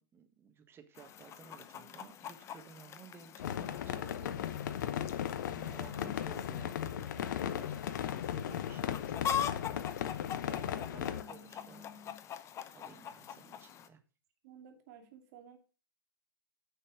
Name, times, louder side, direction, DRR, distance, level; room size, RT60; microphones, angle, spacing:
voice 1, 0.0-4.5 5.4-11.8 12.7-14.0, right 7 dB, 20° right, 1.5 m, -55 dB
Chicken rooster, 0.9-13.9, left 9 dB, 25° left, 0.8 m, -43 dB
sound 1, 3.4-11.2, left 10 dB, 55° left, 0.9 m, -36 dB
voice 2, 5.9-6.3 10.5-12.2 14.4-15.6, equal, 45° right, 2.4 m, -54 dB
10.0 x 6.4 x 4.7 m
figure-of-eight pair, 115°, 12 cm